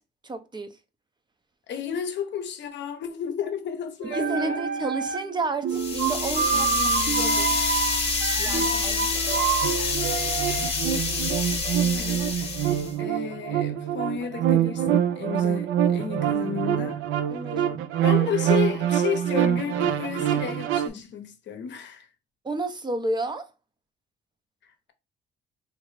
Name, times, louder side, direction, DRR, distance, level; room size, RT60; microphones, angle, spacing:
voice 1, 0.2-0.8 4.1-6.9 7.2-7.6 8.4-9.5 17.3-17.8 22.4-23.5, right 2 dB, 20° right, 0.5 m, -31 dB
voice 2, 1.7-4.6 6.5-7.5 8.4-9.1 11.6-17.0 18.0-22.1, left 8 dB, 65° left, 0.7 m, -33 dB
sound 1, 4.0-5.4 5.6-10.7, right 6 dB, 65° right, 1.1 m, -27 dB
sound 2, 5.7-12.9, left 4 dB, 30° left, 1.0 m, -27 dB
sound 3, 9.6-20.9, right 10 dB, 85° right, 0.4 m, -25 dB
3.1 x 2.6 x 3.1 m
cardioid pair, 90°, 20 cm